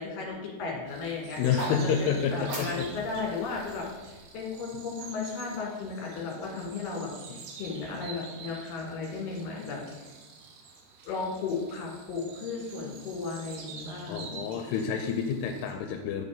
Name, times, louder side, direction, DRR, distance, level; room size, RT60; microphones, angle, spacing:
voice 1, 0.0-1.4 2.0-10.1 11.0-14.4, left 4 dB, 65° left, -2 dB, 3.1 m, -35 dB
sound 1, 0.9-15.7, right 5 dB, 75° right, 1.9 m, -48 dB
voice 2, 1.4-2.9 14.1-16.3, left 7 dB, 85° left, 4 dB, 2.6 m, -29 dB
sound 2, 1.4-5.5, right 1 dB, 35° right, 1.5 m, -42 dB
9.9 x 4.0 x 3.6 m, 1.2 s
omnidirectional pair, 4.6 m